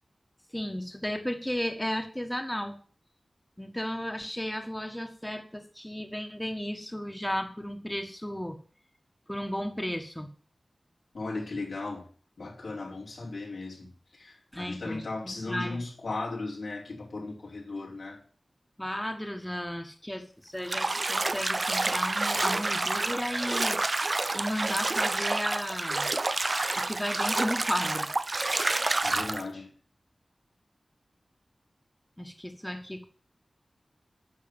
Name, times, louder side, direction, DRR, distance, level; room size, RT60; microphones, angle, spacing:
voice 1, 0.5-2.8 3.6-8.6 9.3-10.3 14.5-15.8 18.8-23.8 24.3-26.1 26.7-28.1 28.5-28.6 32.2-33.0, equal, 10° left, 1.5 m, -34 dB
voice 2, 11.1-12.0 12.4-18.2 29.0-29.7, left 3 dB, 90° left, 4.7 m, -37 dB
Bathtub (filling or washing), 20.6-29.4, right 2 dB, 45° right, 0.5 m, -28 dB
10.5 x 6.0 x 8.8 m
wide cardioid pair, 65°, 0 cm